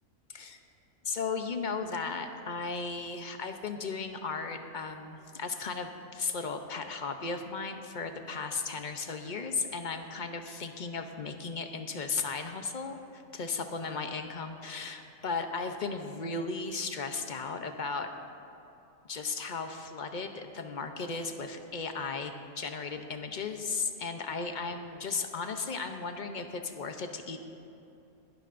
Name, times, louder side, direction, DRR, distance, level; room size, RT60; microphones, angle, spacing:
voice 1, 1.0-18.1 19.1-27.4, left 4 dB, 45° left, 6 dB, 0.7 m, -36 dB
21.5 x 12.0 x 2.6 m, 2.8 s
omnidirectional pair, 1.5 m